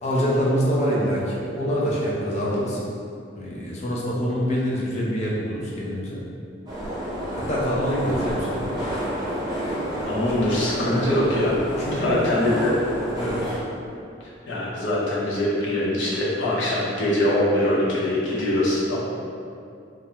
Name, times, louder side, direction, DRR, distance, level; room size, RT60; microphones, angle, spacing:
voice 1, 0.0-2.8 3.3-6.2 7.3-8.7 10.8-11.1 11.8-12.2 13.2-13.5, equal, 35° left, -5 dB, 0.5 m, -25 dB
sound 1, 6.7-13.6, equal, 20° right, 0.6 m, -29 dB
voice 2, 10.1-11.5 11.9-12.7 14.5-19.0, left 1 dB, 75° left, -7 dB, 0.7 m, -23 dB
2.3 x 2.1 x 2.8 m, 2.5 s
head